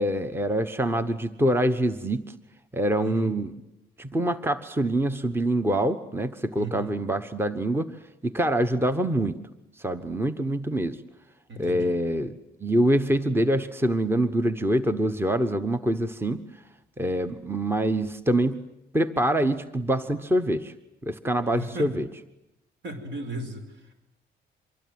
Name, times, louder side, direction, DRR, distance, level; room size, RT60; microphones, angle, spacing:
voice 1, 0.0-2.3 2.7-3.5 4.0-7.9 8.2-9.4 9.8-11.0 11.6-12.3 12.6-16.4 17.0-18.6 18.9-20.7 21.0-22.1, right 1 dB, 10° right, 11 dB, 1.2 m, -25 dB
voice 2, 3.0-3.3 6.6-6.9 11.5-12.0 21.5-21.9 22.8-23.6, right 1 dB, 65° right, 9 dB, 5.4 m, -35 dB
25.5 x 23.5 x 9.6 m, 0.89 s
cardioid pair, 90°, 20 cm